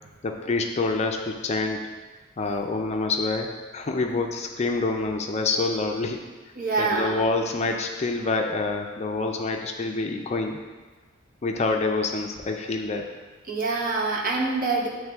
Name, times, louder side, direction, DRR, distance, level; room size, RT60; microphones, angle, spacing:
voice 1, 0.2-1.9 2.4-6.3 6.8-10.6 11.4-13.1, left 3 dB, 35° left, 3 dB, 0.4 m, -27 dB
voice 2, 6.6-7.2 13.5-14.9, right 3 dB, 45° right, -2 dB, 0.9 m, -25 dB
8.9 x 3.2 x 3.4 m, 1.3 s
head